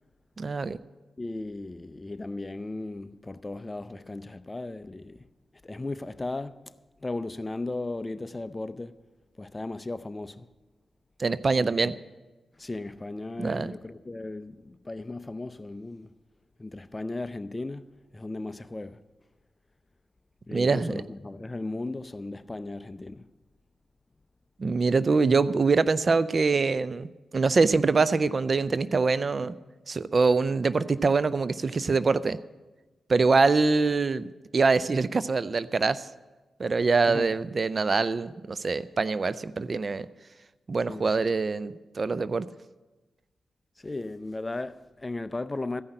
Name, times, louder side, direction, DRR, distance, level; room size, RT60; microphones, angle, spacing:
voice 1, 0.4-0.8 11.2-12.0 13.4-13.7 20.5-20.9 24.6-29.5 29.9-32.4 33.1-34.2 34.5-36.1 36.6-40.1 40.7-42.5, right 4 dB, 50° right, 0.4 m, -24 dB
voice 2, 1.2-5.2 5.6-6.7 7.0-9.0 9.4-10.5 11.5-12.0 12.6-16.1 16.6-19.0 20.5-23.2 37.1-37.3 40.9-41.1 43.8-45.8, left 2 dB, 25° left, 0.5 m, -36 dB
14.5 x 5.7 x 8.8 m
cardioid pair, 55°, 0 cm